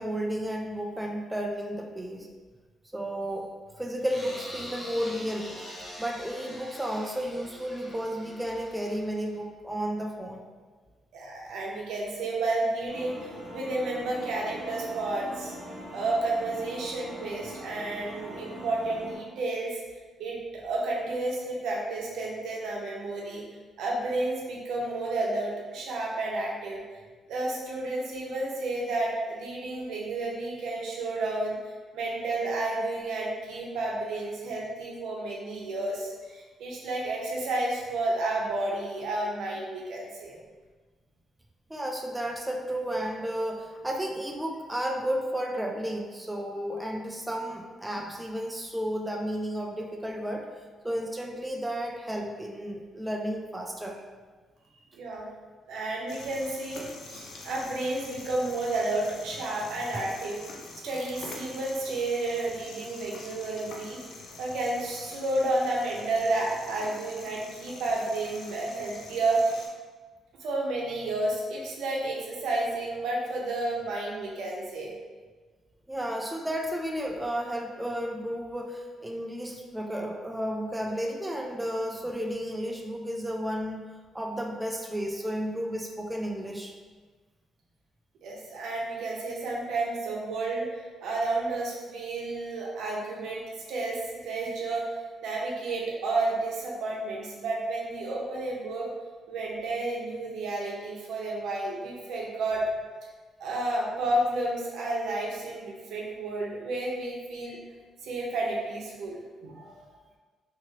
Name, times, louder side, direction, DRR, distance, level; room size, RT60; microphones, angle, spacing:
voice 1, 0.0-2.3 2.9-5.6 6.0-10.5 41.7-50.5 50.8-54.0 75.9-83.8 84.1-86.8, equal, 10° right, 1 dB, 0.3 m, -32 dB
sound 1, 4.1-9.4, left 1 dB, 20° left, 0.8 m, -44 dB
voice 2, 11.1-15.5 15.9-19.8 20.2-23.4 23.8-26.8 27.3-40.4 54.9-55.3 55.7-60.4 60.8-64.0 64.4-69.7 70.4-74.9 88.2-90.7 91.0-94.9 95.2-98.9 99.3-102.6 103.4-107.6 108.0-109.9, right 2 dB, 80° right, -2 dB, 0.7 m, -31 dB
sound 2, 12.9-19.2, equal, 55° left, 1.5 m, -42 dB
sound 3, 56.1-69.7, left 3 dB, 75° left, 0.5 m, -45 dB
3.1 x 2.8 x 2.8 m, 1.4 s
cardioid pair, 90°, 0 cm